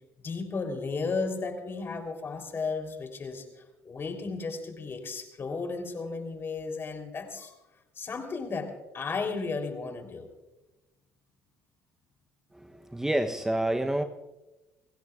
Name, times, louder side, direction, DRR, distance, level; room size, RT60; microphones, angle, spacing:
voice 1, 0.2-7.5 7.9-10.3, left 4 dB, 35° left, 5 dB, 3.4 m, -34 dB
voice 2, 12.5-14.0, right 1 dB, 5° right, 6 dB, 0.8 m, -28 dB
29.5 x 16.0 x 2.4 m, 1.1 s
supercardioid pair, 80°, 6 cm